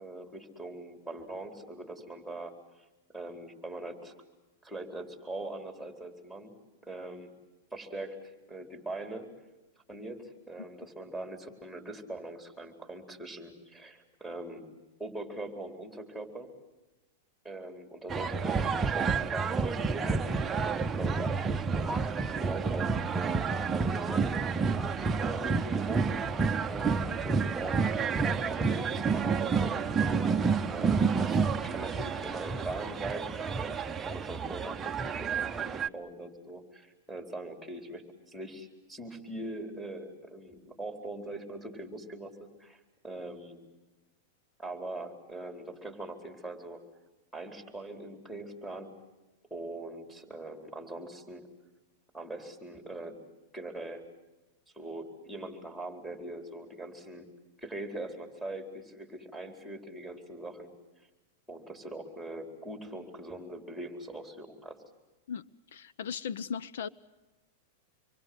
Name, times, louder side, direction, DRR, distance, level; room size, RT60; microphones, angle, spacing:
voice 1, 0.0-2.5 3.1-4.1 4.6-6.6 6.8-7.3 7.7-9.3 9.9-14.7 15.0-16.5 17.4-24.7 25.2-26.2 26.7-27.9 28.2-30.2 30.7-43.6 44.6-46.8 47.3-48.9 49.5-51.4 52.1-53.2 53.5-54.0 54.7-57.3 57.6-60.7 61.5-64.8, right 2 dB, 5° left, 4.3 m, -42 dB
sound 1, 18.1-35.9, right 5 dB, 15° right, 0.8 m, -29 dB
voice 2, 65.7-66.9, left 7 dB, 75° left, 0.8 m, -37 dB
26.5 x 24.0 x 7.9 m
supercardioid pair, 140°, 0 cm